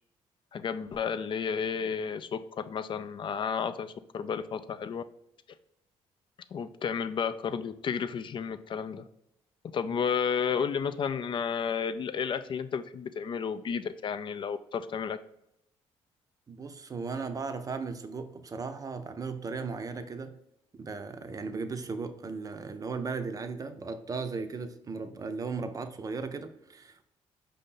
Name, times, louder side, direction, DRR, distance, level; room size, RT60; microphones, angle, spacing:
voice 1, 0.5-5.0 6.5-9.0 9.7-15.2, left 6 dB, 45° left, 11 dB, 0.4 m, -32 dB
voice 2, 16.5-20.4 20.8-27.0, right 4 dB, 30° right, 8 dB, 0.6 m, -36 dB
5.2 x 2.7 x 3.7 m, 0.80 s
cardioid pair, 80°, 12 cm